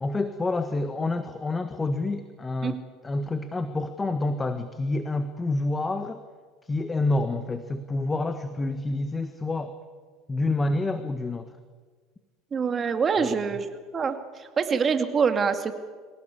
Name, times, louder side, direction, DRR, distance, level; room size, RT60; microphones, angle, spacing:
voice 1, 0.0-6.2 6.6-9.7 10.3-11.5 13.2-13.3, left 2 dB, 20° left, 10 dB, 1.5 m, -28 dB
voice 2, 12.5-13.7 13.9-15.8, right 6 dB, 35° right, 7 dB, 2.4 m, -25 dB
25.0 x 17.5 x 8.6 m, 1.5 s
hypercardioid pair, 75°, 0 cm